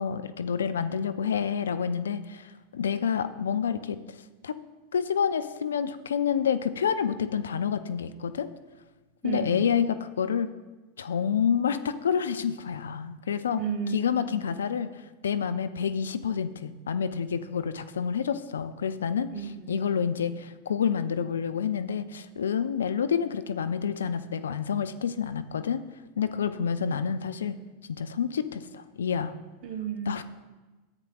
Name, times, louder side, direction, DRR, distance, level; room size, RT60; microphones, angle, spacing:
voice 1, 0.0-4.0 4.4-4.6 4.9-8.5 9.2-10.5 11.0-13.6 13.9-14.9 15.2-19.3 19.7-25.8 26.2-27.6 27.9-29.4 30.1-30.2, left 7 dB, 75° left, 12 dB, 0.5 m, -28 dB
voice 2, 9.2-9.6 13.6-14.4 19.3-19.8 29.6-30.2, right 8 dB, 50° right, 5 dB, 1.1 m, -33 dB
13.5 x 8.9 x 2.4 m, 1.2 s
figure-of-eight pair, 90°, 0 cm